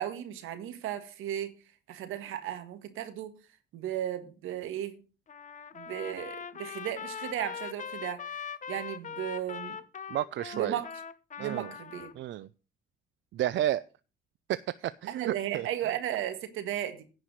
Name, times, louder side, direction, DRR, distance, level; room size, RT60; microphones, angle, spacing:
voice 1, 0.0-1.5 1.9-3.3 3.7-5.0 5.7-9.8 10.5-10.9 11.4-12.1 15.1-17.0, right 11 dB, 80° right, 1.7 m, -35 dB
Trumpet, 5.3-12.1, left 7 dB, 40° left, 0.8 m, -41 dB
voice 2, 10.1-10.8 11.4-11.7 12.2-12.5 13.3-13.8 14.5-14.6 14.8-15.7, right 13 dB, 65° right, 0.5 m, -31 dB
10.5 x 4.8 x 7.8 m
cardioid pair, 80°, 21 cm